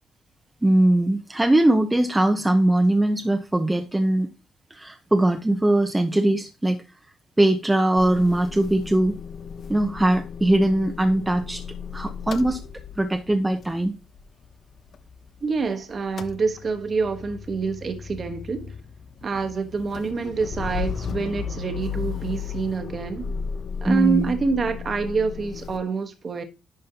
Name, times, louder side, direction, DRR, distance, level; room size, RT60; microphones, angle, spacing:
voice 1, 0.6-4.3 4.7-6.8 7.4-9.1 9.7-11.6 11.9-12.6 13.0-13.9 23.8-24.3, right 1 dB, 10° right, 0.9 m, -21 dB
Motor vehicle (road) / Engine starting / Idling, 8.0-15.7 15.9-25.8, left 6 dB, 55° left, 0.8 m, -35 dB
voice 2, 15.4-18.7 19.2-23.3 23.8-26.4, right 5 dB, 45° right, 1.3 m, -26 dB
10.5 x 5.4 x 2.9 m
cardioid pair, 90°, 0 cm